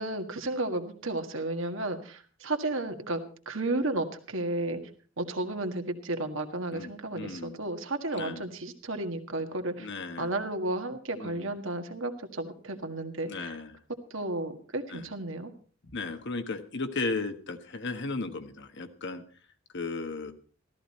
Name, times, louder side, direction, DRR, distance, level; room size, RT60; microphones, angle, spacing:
voice 1, 0.0-4.8 5.2-9.9 10.2-13.5 14.1-15.5, right 2 dB, 70° right, 6 dB, 1.8 m, -33 dB
voice 2, 6.7-7.6 8.1-8.4 9.8-10.3 11.1-11.5 13.3-13.8 14.9-15.1 15.8-19.2 19.7-20.3, left 3 dB, 60° left, 8 dB, 1.4 m, -35 dB
14.0 x 14.0 x 4.3 m, 0.40 s
head